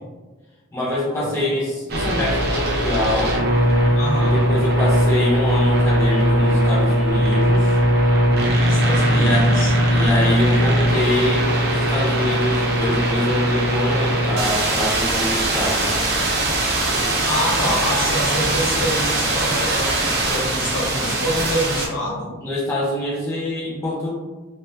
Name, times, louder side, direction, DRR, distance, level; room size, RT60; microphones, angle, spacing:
voice 1, 0.7-3.4 4.2-7.8 9.1-9.5 9.9-15.9 22.4-24.1, left 1 dB, 10° left, -7 dB, 0.3 m, -25 dB
sound 1, 1.9-21.9, right 1 dB, 50° right, 0.5 m, -19 dB
voice 2, 4.0-4.4 8.7-9.7 17.2-22.4, equal, 70° left, -4 dB, 0.9 m, -26 dB
2.4 x 2.1 x 2.6 m, 1.3 s
head